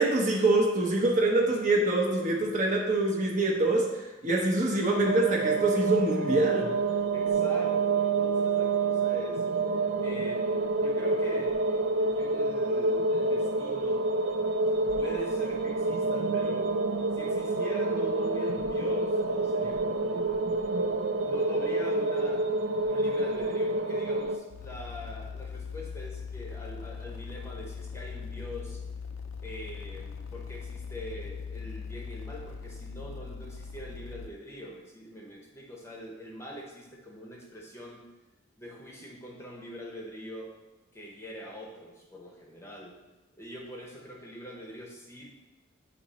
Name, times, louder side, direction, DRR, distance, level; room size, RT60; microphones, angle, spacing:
voice 1, 0.0-6.7, right 2 dB, 40° right, -1 dB, 0.9 m, -25 dB
sound 1, 5.0-24.4, right 3 dB, 65° right, 0.5 m, -28 dB
voice 2, 7.1-9.4 10.0-14.1 14.9-16.7 17.1-20.5 20.9-22.5 22.8-28.8 29.4-38.0 38.6-40.5 40.9-43.0 43.4-45.3, equal, 15° left, -1 dB, 0.8 m, -43 dB
sound 2, 24.5-34.3, left 5 dB, 80° left, 0.5 m, -40 dB
8.6 x 2.9 x 4.1 m, 1.1 s
head